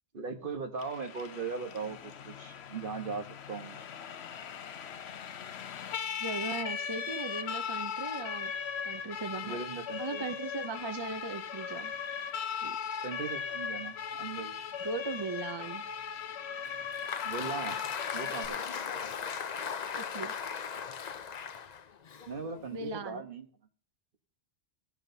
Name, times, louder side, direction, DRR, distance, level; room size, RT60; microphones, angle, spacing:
voice 1, 0.1-3.8 9.4-10.2 13.0-14.5 17.2-18.7 22.3-23.5, right 5 dB, 55° right, 1.3 m, -39 dB
Siren, 0.8-18.5, left 7 dB, 75° left, 1.0 m, -38 dB
voice 2, 6.2-8.5 8.8-9.6 10.0-11.9 12.6-12.9 14.8-15.9 18.2-18.3 20.0-20.3 22.7-23.3, right 4 dB, 35° right, 0.4 m, -38 dB
Applause, 16.6-23.0, left 7 dB, 50° left, 0.6 m, -38 dB
17.0 x 9.8 x 2.7 m
omnidirectional pair, 1.1 m